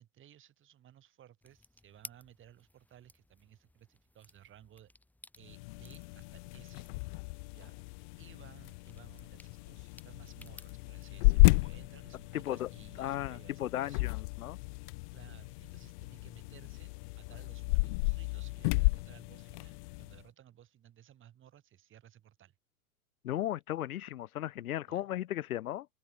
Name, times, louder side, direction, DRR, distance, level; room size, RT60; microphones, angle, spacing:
voice 1, 0.0-4.9 5.4-7.2 7.5-7.8 8.2-14.0 15.1-22.5 24.9-25.1, right 11 dB, 25° right, 7.7 m, -59 dB
sound 1, 1.4-11.1, left 1 dB, 5° left, 2.5 m, -58 dB
sound 2, 5.4-20.2, left 27 dB, 35° left, 0.5 m, -33 dB
voice 2, 12.3-12.7 13.0-14.6 23.2-25.9, left 13 dB, 70° left, 1.0 m, -36 dB
open air
hypercardioid pair, 115°, 44 cm